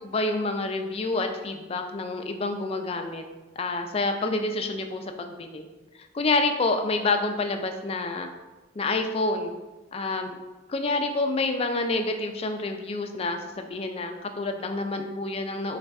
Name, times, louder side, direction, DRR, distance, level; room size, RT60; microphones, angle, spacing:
voice 1, 0.0-3.2 3.6-5.7 6.1-8.3 8.8-9.5 9.9-10.3 10.7-15.8, left 2 dB, 30° left, 5 dB, 0.4 m, -28 dB
4.0 x 3.3 x 3.5 m, 1.1 s
head